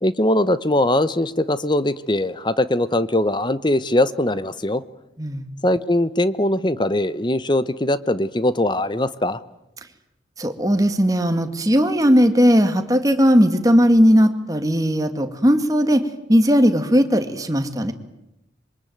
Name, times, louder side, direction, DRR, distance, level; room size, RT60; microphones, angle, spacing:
voice 1, 0.0-4.8 5.6-9.4, left 1 dB, 25° left, 15 dB, 1.0 m, -21 dB
voice 2, 10.4-17.9, equal, 20° right, 7 dB, 2.0 m, -17 dB
26.0 x 24.0 x 9.4 m, 0.90 s
head